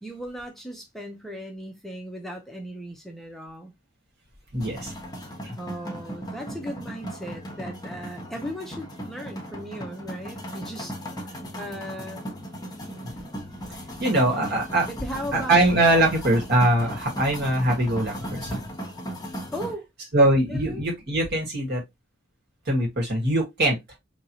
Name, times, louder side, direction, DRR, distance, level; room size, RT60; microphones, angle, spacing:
voice 1, 0.0-3.7 5.6-11.0 11.2-12.2 14.8-15.6 19.5-19.9 20.5-20.8, equal, ahead, 0.6 m, -37 dB
voice 2, 4.5-4.9 5.4-5.5 13.0-13.1 14.0-14.9 15.3-18.6 20.1-21.8 22.6-23.8, right 1 dB, 55° right, 1.8 m, -22 dB
sound 1, 4.6-19.7, equal, 20° left, 1.0 m, -37 dB
4.5 x 2.8 x 2.7 m
head